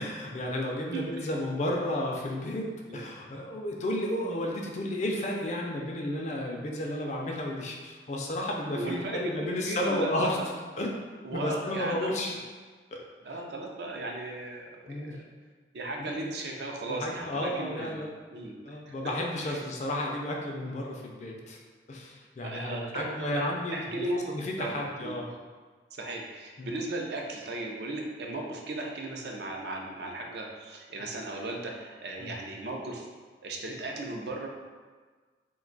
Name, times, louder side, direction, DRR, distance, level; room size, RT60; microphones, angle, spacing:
voice 1, 0.0-10.4 10.8-11.0 11.3-12.3 12.9-13.0 14.9-15.2 16.0-16.3 16.9-18.1 18.6-21.6 21.9-23.8 24.3-25.3 26.6-26.7 32.2-32.4, left 1 dB, 40° left, 0 dB, 0.4 m, -32 dB
voice 2, 0.9-1.3 2.9-3.0 8.7-10.4 11.2-12.4 13.2-15.2 15.7-18.0 18.3-18.6 18.9-19.0 19.4-19.6 22.4-23.5 23.7-25.2 25.9-33.1 33.4-34.5, right 2 dB, 65° right, 0 dB, 0.5 m, -36 dB
2.6 x 2.2 x 3.8 m, 1.4 s
head